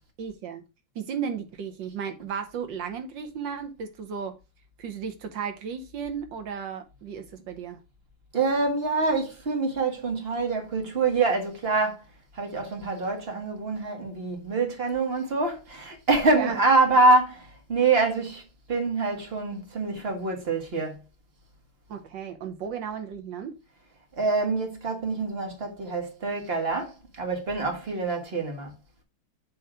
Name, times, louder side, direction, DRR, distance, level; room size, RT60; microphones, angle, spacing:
voice 1, 0.2-0.6 0.9-4.4 4.8-7.8 16.3-16.6 21.9-23.6, right 7 dB, 65° right, 1.5 m, -34 dB
voice 2, 8.3-12.0 12.3-18.4 18.7-21.0 24.2-28.7, right 3 dB, 30° right, 1.4 m, -25 dB
7.9 x 3.1 x 4.9 m
omnidirectional pair, 2.4 m